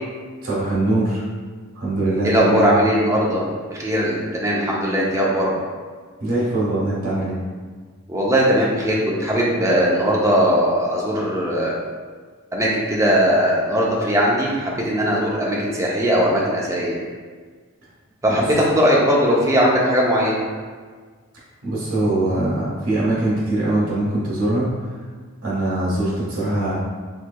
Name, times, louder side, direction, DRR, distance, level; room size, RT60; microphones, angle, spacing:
voice 1, 0.4-1.2 1.7-2.7 6.2-7.4 18.3-18.4 21.6-24.7 25.4-26.7, right 1 dB, 80° right, -8 dB, 1.3 m, -22 dB
voice 2, 2.2-3.4 3.7-5.5 8.1-11.7 12.5-17.0 18.2-20.4, equal, 15° right, -4 dB, 0.5 m, -19 dB
4.5 x 3.1 x 2.3 m, 1.5 s
head